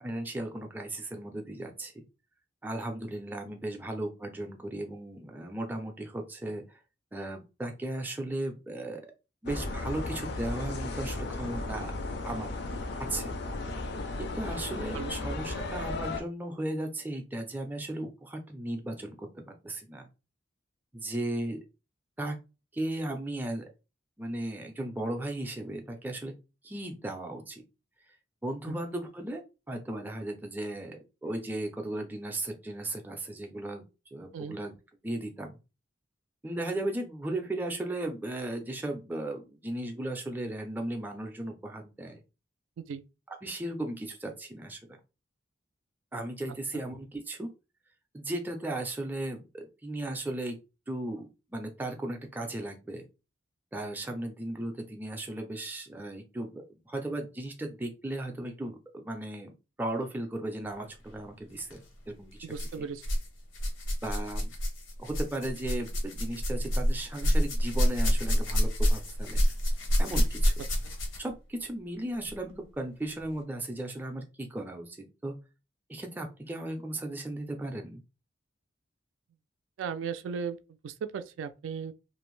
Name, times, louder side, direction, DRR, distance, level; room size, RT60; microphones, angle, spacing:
voice 1, 0.0-1.9 2.6-6.6 7.1-9.0 9.4-11.9 12.2-12.5 13.1-13.3 14.2-20.1 20.9-21.6 22.2-22.4 22.7-23.6 24.2-26.3 26.6-27.6 28.4-33.8 34.1-34.7 35.0-35.6 36.4-42.2 43.3-45.0 46.1-47.5 48.1-50.6 50.9-53.0 53.7-59.5 59.8-62.4 62.8-62.9 64.0-64.5 65.0-69.4 70.0-70.5 71.2-75.4 75.9-78.0, right 1 dB, 10° right, 0.4 m, -36 dB
sound 1, 9.5-16.2, left 2 dB, 60° left, 0.4 m, -35 dB
voice 2, 14.5-15.2 28.7-28.8 34.3-34.6 42.8-43.0 46.7-46.8 62.4-63.1 70.8-71.0 79.8-81.9, right 6 dB, 80° right, 0.3 m, -37 dB
sound 2, 61.6-61.8 62.5-63.3 63.5-71.3 72.3-72.4 73.2-73.3, equal, 80° left, 0.8 m, -27 dB
2.5 x 2.1 x 3.0 m
head